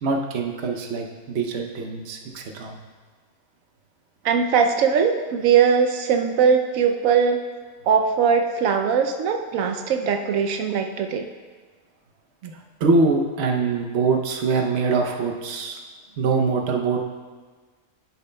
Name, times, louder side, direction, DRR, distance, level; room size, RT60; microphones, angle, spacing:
voice 1, 0.0-2.8 12.4-12.5 12.8-15.8 16.2-17.0, right 4 dB, 60° right, 2 dB, 1.0 m, -23 dB
voice 2, 4.2-7.4 7.9-11.3, right 6 dB, 90° right, 5 dB, 1.0 m, -20 dB
11.5 x 7.0 x 2.2 m, 1.5 s
omnidirectional pair, 1.4 m